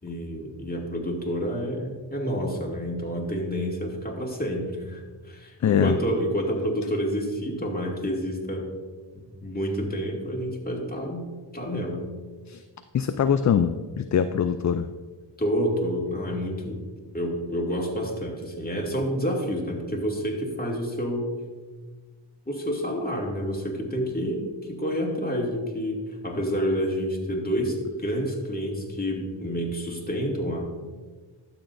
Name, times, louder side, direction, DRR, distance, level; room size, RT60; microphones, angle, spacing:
voice 1, 0.0-8.7 9.4-11.3 11.5-12.0 15.4-16.9 17.1-21.3 22.5-30.8, equal, 20° left, -1 dB, 2.3 m, -29 dB
voice 2, 5.6-6.0 12.5-12.6 12.9-14.9, left 8 dB, 40° left, 10 dB, 0.4 m, -23 dB
12.5 x 7.1 x 2.6 m, 1.4 s
cardioid pair, 45°, 48 cm